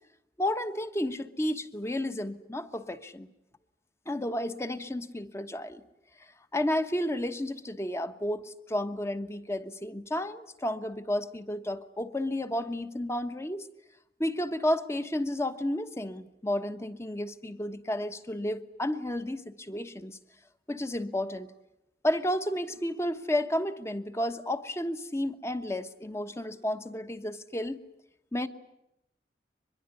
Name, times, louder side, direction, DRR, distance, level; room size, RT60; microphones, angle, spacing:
voice 1, 0.4-3.3 4.1-5.8 6.5-13.7 14.2-20.2 20.7-21.5 22.0-27.8 28.3-28.5, left 1 dB, 15° left, 10 dB, 1.2 m, -32 dB
24.0 x 22.0 x 9.7 m, 0.83 s
head